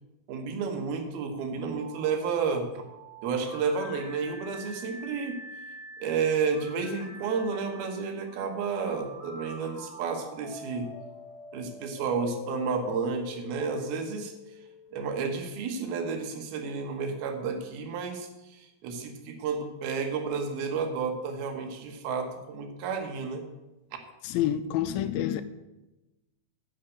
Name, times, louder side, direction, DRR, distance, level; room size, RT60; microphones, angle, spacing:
voice 1, 0.3-2.7 3.2-5.4 6.0-10.9 11.5-14.3 14.9-23.5, right 5 dB, 80° right, 3.1 m, -31 dB
sound 1, 1.7-15.5, left 2 dB, 15° left, 3.5 m, -45 dB
voice 2, 24.2-25.4, left 11 dB, 80° left, 2.3 m, -28 dB
10.0 x 6.5 x 7.9 m
omnidirectional pair, 4.4 m